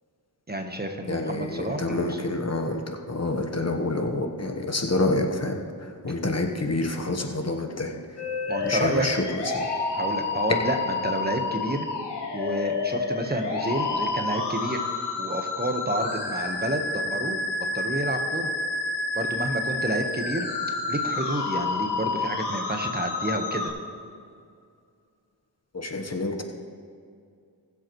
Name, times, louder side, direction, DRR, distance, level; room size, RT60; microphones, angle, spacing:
voice 1, 0.5-2.2 8.5-9.1 10.0-11.9 12.3-14.8 15.2-17.4 17.7-18.5 19.1-20.5 20.9-23.7, right 1 dB, 25° right, 5 dB, 1.2 m, -29 dB
voice 2, 1.0-8.2 8.6-9.7 25.7-26.4, left 2 dB, 40° left, 3 dB, 1.3 m, -28 dB
sound 1, 8.2-23.7, left 3 dB, 85° left, 2.1 m, -29 dB
20.0 x 7.8 x 3.2 m, 2.3 s
cardioid pair, 60°, 40 cm